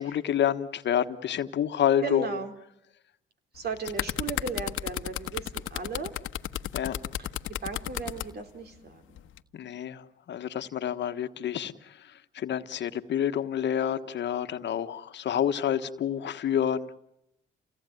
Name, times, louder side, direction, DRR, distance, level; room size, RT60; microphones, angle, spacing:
voice 1, 0.0-2.3 6.7-7.0 9.5-12.0 12.3-16.9, left 9 dB, 65° left, 10 dB, 1.4 m, -28 dB
voice 2, 2.0-2.5 3.5-6.1 7.2-9.0, right 4 dB, 55° right, 7 dB, 3.4 m, -36 dB
sound 1, 3.6-8.3 9.2-9.4, left 11 dB, 85° left, 1.3 m, -33 dB
30.0 x 18.0 x 9.3 m, 0.81 s
cardioid pair, 90°, 20 cm